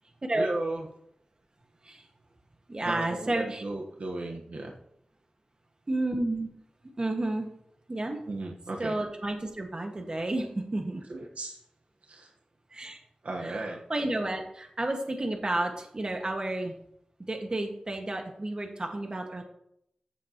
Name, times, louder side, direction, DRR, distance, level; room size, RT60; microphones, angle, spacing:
voice 1, 0.3-0.9 2.8-4.7 8.3-8.9 11.1-11.6 12.1-12.3 13.2-13.8, right 2 dB, 65° right, 0 dB, 1.2 m, -35 dB
voice 2, 2.7-3.6 5.9-6.5 7.0-7.5 7.9-8.2 8.8-11.0 12.7-13.0 13.4-16.7 17.3-19.4, right 2 dB, 35° right, 3 dB, 1.6 m, -31 dB
14.0 x 7.5 x 2.9 m, 0.74 s
wide cardioid pair, 85°, 2 cm